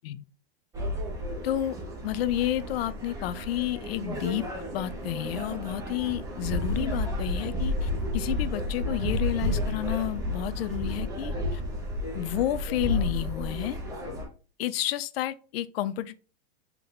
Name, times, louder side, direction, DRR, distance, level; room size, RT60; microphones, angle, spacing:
sound 1, 0.7-14.2, left 1 dB, 10° right, 0.9 m, -32 dB
voice 1, 1.4-1.8 2.0-4.5 4.7-11.6 12.1-13.8 14.6-16.2, left 13 dB, 70° left, 0.5 m, -30 dB
3.5 x 2.9 x 3.8 m
supercardioid pair, 145°, 31 cm